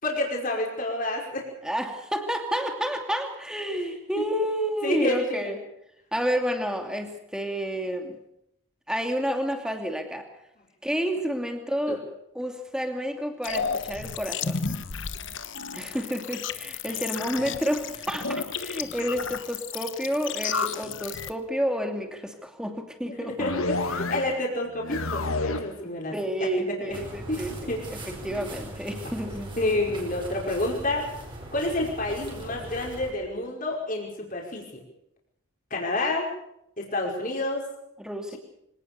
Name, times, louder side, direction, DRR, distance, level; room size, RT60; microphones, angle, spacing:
voice 1, 0.0-1.5 4.8-5.5 11.9-12.0 16.8-16.9 23.1-26.1 26.4-27.0 27.3-28.1 29.6-31.1 31.5-34.8 35.7-36.3 36.8-37.7, left 2 dB, 40° left, -1 dB, 5.2 m, -29 dB
voice 2, 1.6-5.6 6.1-8.2 8.9-10.3 10.8-12.0 12.3-14.7 15.7-23.5 26.1-29.6 38.0-38.4, equal, 5° right, 4 dB, 2.6 m, -30 dB
sound 1, 13.4-21.3, left 5 dB, 60° left, 1.2 m, -32 dB
sound 2, 23.4-24.4 24.7-25.8, left 3 dB, 80° left, 1.7 m, -29 dB
sound 3, 26.9-33.1, right 1 dB, 25° right, 5.0 m, -40 dB
24.5 x 18.0 x 6.9 m, 0.78 s
head